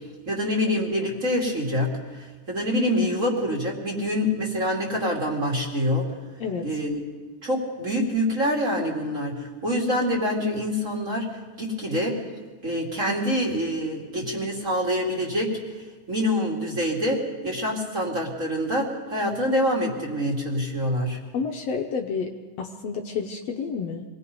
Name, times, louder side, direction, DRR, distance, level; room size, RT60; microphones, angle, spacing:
voice 1, 0.2-6.1 6.6-7.0 7.4-11.3 11.6-12.2 12.6-15.5 16.1-21.2, equal, 25° right, -2 dB, 2.8 m, -26 dB
voice 2, 21.3-22.3 22.6-24.0, left 5 dB, 65° left, 2 dB, 2.0 m, -29 dB
25.5 x 19.0 x 5.4 m, 1.3 s
omnidirectional pair, 3.4 m